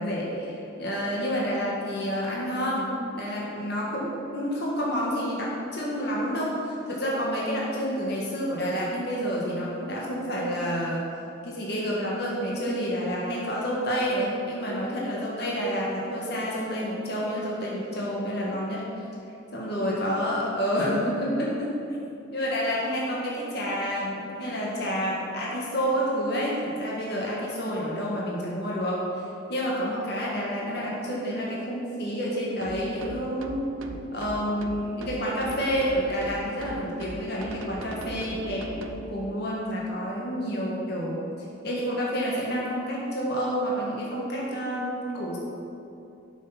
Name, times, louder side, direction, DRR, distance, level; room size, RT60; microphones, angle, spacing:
voice 1, 0.0-11.1 11.4-18.8 19.5-21.7 22.3-29.0 29.5-33.7 34.1-41.2 41.6-45.4, equal, 55° left, -5 dB, 1.6 m, -29 dB
sound 1, 32.6-39.0, right 2 dB, 90° right, 0.6 m, -40 dB
7.5 x 6.4 x 5.8 m, 2.7 s
head